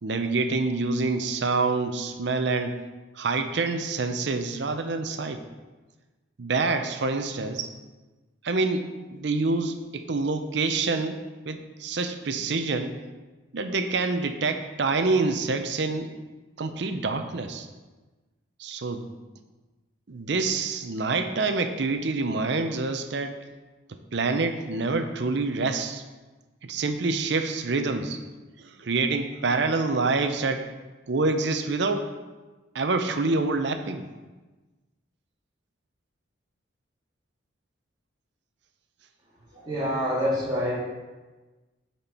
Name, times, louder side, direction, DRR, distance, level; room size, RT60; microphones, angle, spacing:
voice 1, 0.0-2.8 3.2-5.4 6.4-7.7 8.4-8.9 9.1-11.2 11.4-13.0 13.5-16.1 16.6-17.7 18.6-19.1 20.1-23.3 23.9-26.0 26.6-28.2 28.6-30.7 31.1-32.1 32.7-34.1, right 3 dB, 60° right, 8 dB, 0.6 m, -26 dB
voice 2, 39.7-40.8, equal, 20° right, -7 dB, 2.1 m, -26 dB
8.7 x 4.3 x 4.3 m, 1.2 s
head